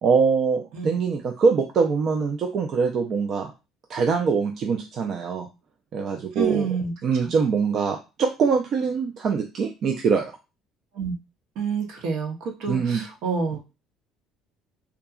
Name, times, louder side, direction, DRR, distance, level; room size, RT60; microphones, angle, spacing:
voice 1, 0.0-3.5 3.9-5.5 5.9-6.7 7.0-10.3 12.7-13.0, right 5 dB, 55° right, 3 dB, 0.4 m, -23 dB
voice 2, 6.3-6.9 7.2-7.3 10.9-11.1 11.6-13.7, right 5 dB, 75° right, 3 dB, 0.8 m, -28 dB
2.8 x 2.3 x 2.3 m, 0.28 s
supercardioid pair, 95°, 0 cm